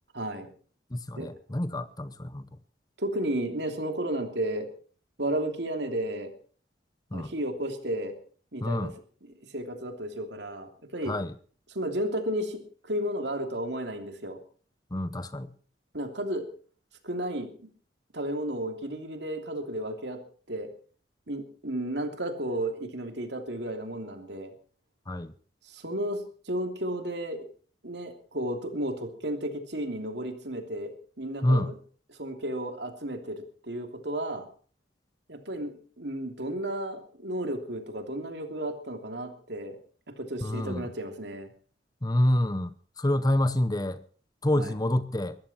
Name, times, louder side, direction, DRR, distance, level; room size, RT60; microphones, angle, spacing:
voice 1, 0.1-0.5 1.2-1.3 3.0-4.7 5.2-6.3 7.1-8.1 8.5-8.9 9.5-11.1 11.7-14.4 15.9-16.5 17.0-17.7 18.1-20.2 20.5-20.7 21.3-24.5 25.7-27.5 27.8-31.7 32.2-34.5 35.3-39.8 40.2-41.5 44.5-44.7, right 1 dB, 65° right, 3.1 m, -33 dB
voice 2, 0.9-2.5 7.1-7.3 8.6-8.9 11.1-11.3 14.9-15.5 25.1-25.3 31.4-31.7 40.4-40.9 42.0-42.7 43.0-44.0 44.4-45.4, left 1 dB, 20° left, 0.8 m, -27 dB
20.5 x 14.5 x 4.4 m
head